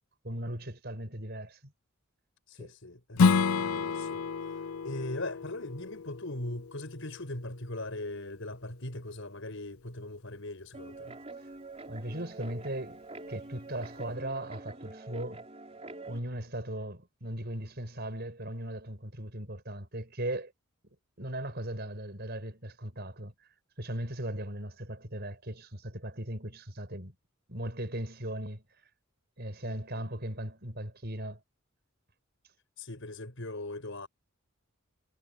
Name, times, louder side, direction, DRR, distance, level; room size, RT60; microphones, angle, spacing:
voice 1, 0.2-1.6 2.6-2.7 11.9-13.0 13.3-15.5 16.1-20.5 21.2-23.3 23.8-27.1 27.5-28.6 29.4-31.4, right 1 dB, 50° right, 5.9 m, -38 dB
voice 2, 2.5-11.1 29.6-30.1 32.8-34.1, left 1 dB, 65° left, 6.1 m, -40 dB
Strum, 3.2-8.4, left 5 dB, 85° left, 0.5 m, -30 dB
Guitar, 10.7-16.2, right 2 dB, 30° right, 3.6 m, -45 dB
head